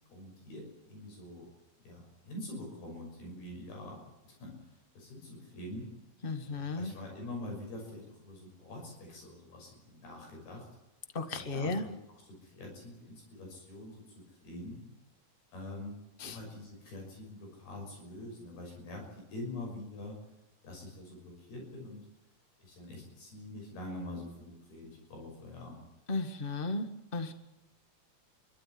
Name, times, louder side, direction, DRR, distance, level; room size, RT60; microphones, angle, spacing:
voice 1, 0.1-1.5 1.8-5.9 6.4-10.7 11.3-14.9 15.5-20.2 20.6-22.1 22.6-25.8, left 1 dB, 90° left, 1 dB, 8.2 m, -45 dB
voice 2, 6.2-6.9 11.1-11.8 16.2-16.4 26.1-26.9 27.1-27.3, left 3 dB, 40° left, 8 dB, 0.7 m, -34 dB
29.0 x 12.5 x 9.8 m, 0.95 s
omnidirectional pair, 4.4 m